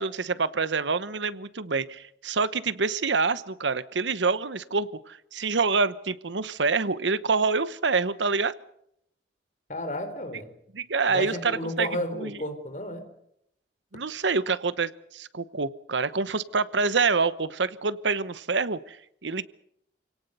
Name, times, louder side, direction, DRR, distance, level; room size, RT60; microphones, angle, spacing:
voice 1, 0.0-8.5 10.7-11.9 12.1-12.3 13.9-19.0 19.2-19.4, right 4 dB, 90° right, 16 dB, 1.0 m, -26 dB
voice 2, 9.7-10.6 11.1-13.1, left 1 dB, 45° left, 7 dB, 4.1 m, -32 dB
28.5 x 18.0 x 6.8 m, 0.74 s
head